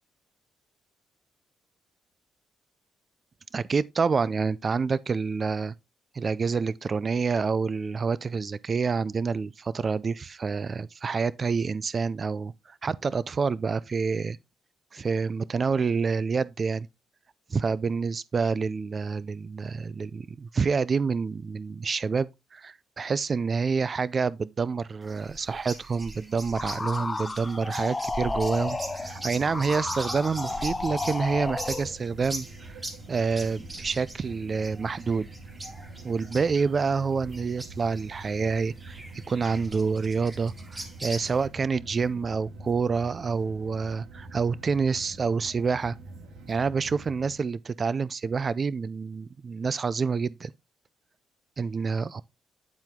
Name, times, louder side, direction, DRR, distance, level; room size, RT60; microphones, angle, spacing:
voice 1, 3.5-5.7 6.1-14.4 14.9-16.9 17.5-32.8 33.1-35.3 36.0-39.0 39.3-46.0 46.5-50.5 51.6-52.2, right 5 dB, 40° right, 0.4 m, -28 dB
sound 1, 25.0-41.5, right 1 dB, 20° right, 2.2 m, -42 dB
sound 2, 26.5-31.9, left 3 dB, 20° left, 0.4 m, -32 dB
sound 3, 28.3-47.4, right 3 dB, 80° right, 2.5 m, -45 dB
9.5 x 4.5 x 3.6 m
cardioid pair, 90°, 0 cm